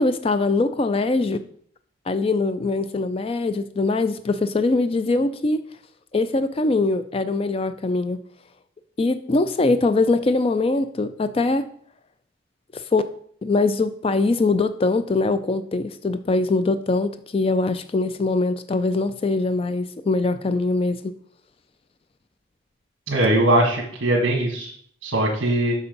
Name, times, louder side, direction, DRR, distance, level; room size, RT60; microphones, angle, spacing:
voice 1, 0.0-1.4 2.1-5.6 6.1-8.2 9.0-11.7 12.7-13.0 13.4-21.0, left 3 dB, 30° left, 11 dB, 0.3 m, -22 dB
voice 2, 23.1-24.7 25.0-25.7, right 1 dB, 70° right, -2 dB, 1.6 m, -20 dB
6.9 x 6.0 x 5.3 m, 0.62 s
head